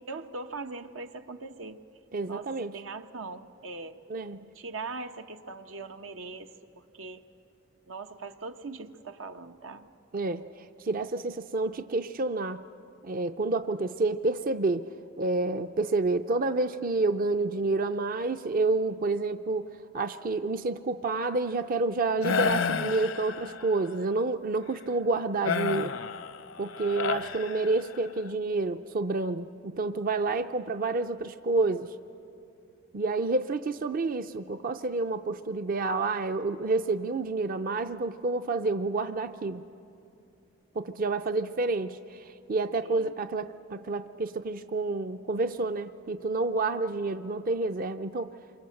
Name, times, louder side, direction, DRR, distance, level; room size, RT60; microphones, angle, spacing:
voice 1, 0.1-1.8 2.3-4.0 4.5-7.2 7.9-9.9 41.0-41.2 42.8-43.1, right 3 dB, 90° right, 6 dB, 1.1 m, -41 dB
voice 2, 2.1-2.7 4.1-4.4 10.1-10.4 10.8-12.6 13.0-14.9 15.2-19.7 19.9-26.0 26.6-31.9 32.9-39.6 40.8-48.3, right 3 dB, 45° right, 10 dB, 0.5 m, -29 dB
sound 1, 22.2-23.8 25.5-28.1, left 5 dB, 75° left, 0.8 m, -31 dB
27.5 x 24.0 x 7.8 m, 2.7 s
head